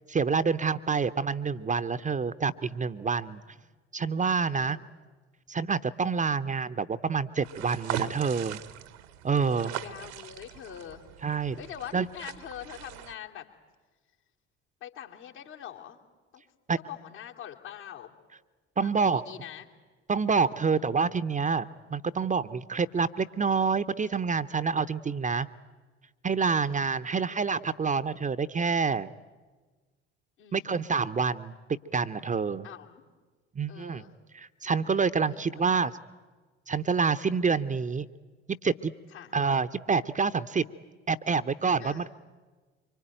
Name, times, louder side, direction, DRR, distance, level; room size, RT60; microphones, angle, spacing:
voice 1, 0.1-3.4 3.9-4.8 5.5-8.6 9.2-9.7 11.2-11.6 11.9-12.1 16.7-16.8 18.8-19.2 20.1-21.7 21.9-25.5 26.2-29.1 30.5-31.5 31.9-32.7 33.6-34.0 34.3-35.9 36.7-38.1 38.5-38.9 39.3-40.6 41.1-42.1, right 5 dB, 20° right, 11 dB, 0.7 m, -27 dB
voice 2, 3.2-3.6 4.5-4.9 9.3-11.0 11.6-13.5 14.8-16.0 16.3-16.4 16.8-18.1 18.8-19.7 20.6-20.9 30.4-30.7 32.6-33.0 33.7-34.1 35.3-35.9 39.1-39.3 41.8-42.1, left 10 dB, 70° left, -2 dB, 2.8 m, -44 dB
sound 1, 7.4-13.2, right 11 dB, 70° right, 1.2 m, -40 dB
24.5 x 24.5 x 9.1 m, 1.3 s
figure-of-eight pair, 55°, 35 cm